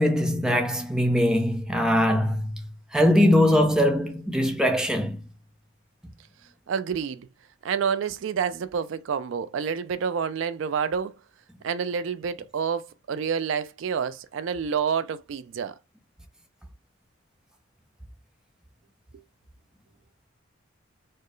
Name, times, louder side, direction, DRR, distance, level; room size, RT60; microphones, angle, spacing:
voice 1, 0.0-2.5 2.9-5.2, left 1 dB, 5° right, 0.5 m, -21 dB
voice 2, 6.7-7.3 7.6-11.2 11.6-15.7, right 6 dB, 65° right, 0.3 m, -28 dB
4.4 x 2.0 x 3.1 m
head